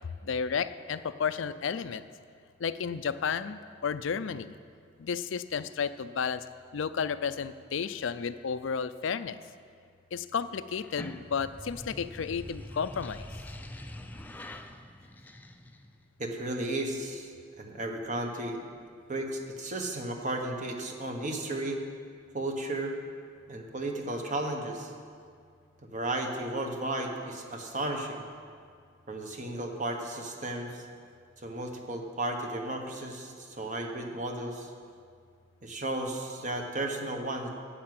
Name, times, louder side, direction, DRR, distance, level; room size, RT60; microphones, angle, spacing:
voice 1, 0.2-2.1 2.6-4.5 5.0-6.4 6.7-9.4 10.1-13.3, left 6 dB, 70° left, 13 dB, 0.4 m, -32 dB
sound 1, 10.7-16.0, left 1 dB, 10° left, 0.5 m, -44 dB
voice 2, 16.2-17.3 17.6-18.6 19.1-21.8 22.3-23.0 23.5-24.9 25.8-28.3 29.1-30.9 31.4-34.7 35.6-37.5, right 1 dB, 40° right, 3 dB, 1.3 m, -34 dB
10.0 x 8.4 x 7.8 m, 2.2 s
head